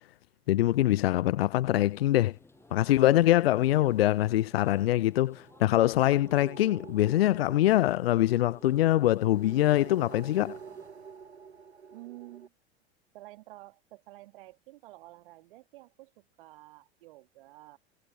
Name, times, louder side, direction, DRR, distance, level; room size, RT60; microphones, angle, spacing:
voice 1, 0.5-2.3 2.7-10.6, left 14 dB, 65° left, 0.4 m, -24 dB
sound 1, 1.7-10.9, left 2 dB, 10° left, 6.7 m, -59 dB
sound 2, 2.6-12.5, right 6 dB, 80° right, 1.1 m, -49 dB
voice 2, 11.9-12.5 13.1-17.8, right 19 dB, 55° right, 2.1 m, -50 dB
figure-of-eight pair, 80°, 32 cm